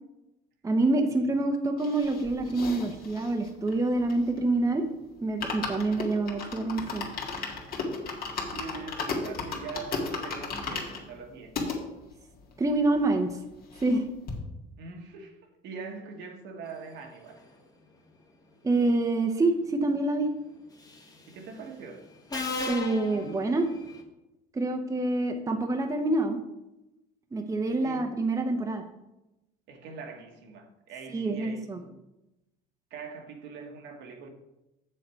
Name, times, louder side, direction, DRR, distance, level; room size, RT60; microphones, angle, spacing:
voice 1, 0.6-4.8 5.2-7.1 12.6-13.4 13.8-14.0 18.6-20.3 22.7-23.7 24.5-26.4 27.3-28.8 31.1-31.8, right 2 dB, 15° right, 4 dB, 0.8 m, -26 dB
sound 1, 1.8-4.6 4.9-5.0 5.2-11.8 12.4-12.5 12.6-12.7 13.0-14.0 14.3-14.4, left 4 dB, 55° left, 1.9 m, -35 dB
voice 2, 8.5-11.5 14.8-15.4 15.6-17.4 21.3-22.1 27.8-28.1 29.7-32.0 32.9-34.3, right 5 dB, 70° right, 4 dB, 1.4 m, -42 dB
Subway metro underground, 20.8-21.2 22.3-24.0, left 3 dB, 20° left, 1.3 m, -35 dB
7.4 x 6.8 x 4.5 m, 0.95 s
cardioid pair, 105°, 19 cm